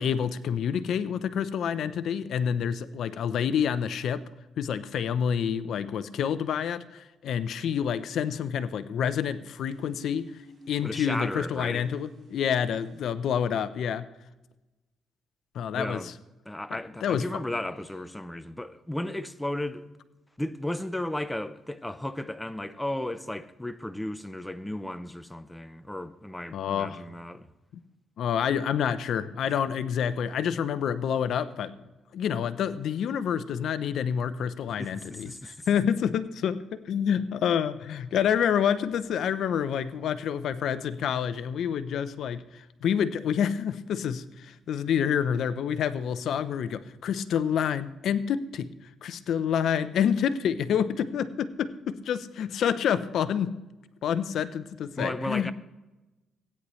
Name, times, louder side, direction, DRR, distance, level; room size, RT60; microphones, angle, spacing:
voice 1, 0.0-4.2 4.6-10.3 10.7-14.1 15.5-16.0 16.7-17.3 26.5-27.0 28.2-31.7 32.1-48.7 49.0-53.5 54.0-55.5, left 8 dB, 70° left, 0.6 m, -28 dB
sound 1, 9.7-13.0, equal, 45° right, 4.6 m, -50 dB
voice 2, 10.8-11.9 15.7-16.1 16.5-19.8 20.4-27.5 34.8-35.7 54.9-55.5, left 1 dB, 10° left, 0.6 m, -34 dB
16.5 x 9.7 x 3.1 m
cardioid pair, 90°, 0 cm